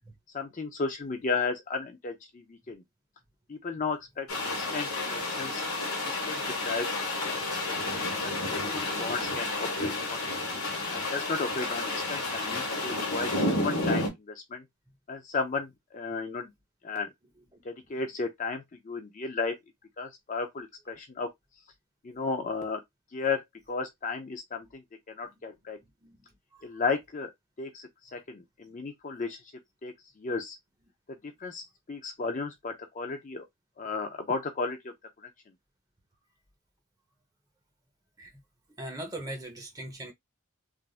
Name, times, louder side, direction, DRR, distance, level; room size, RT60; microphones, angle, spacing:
voice 1, 0.3-2.8 3.5-5.6 6.1-6.9 7.2-7.3 7.7-8.1 8.4-10.3 10.9-14.6 15.1-16.5 16.8-17.1 17.7-19.5 20.0-21.3 22.0-22.8 23.1-23.4 23.7-24.8 25.1-25.8 26.6-27.3 27.6-29.4 29.8-30.6 31.4-31.6 31.9-33.4 33.8-34.9, left 4 dB, 35° left, 0.4 m, -34 dB
sound 1, 4.3-14.1, left 2 dB, 70° left, 1.2 m, -31 dB
voice 2, 38.8-40.1, right 1 dB, 15° right, 0.9 m, -40 dB
3.4 x 2.6 x 2.4 m
head